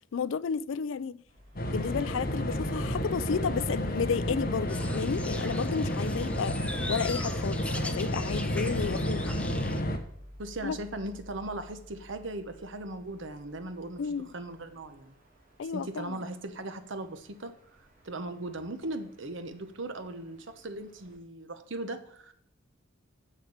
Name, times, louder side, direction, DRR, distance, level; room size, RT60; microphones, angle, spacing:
voice 1, 0.1-1.2 1.7-6.6 6.9-9.3 10.6-10.8 14.0-14.3 15.6-16.2, left 6 dB, 70° left, 0.4 m, -32 dB
sound 1, 1.3-21.2, equal, 45° right, 3.1 m, -52 dB
sound 2, 1.6-10.0, equal, 50° left, 1.1 m, -31 dB
sound 3, 4.7-9.8, left 2 dB, 5° left, 0.7 m, -41 dB
voice 2, 10.4-15.1 15.7-22.3, right 2 dB, 70° right, 1.1 m, -38 dB
7.2 x 6.7 x 7.2 m
head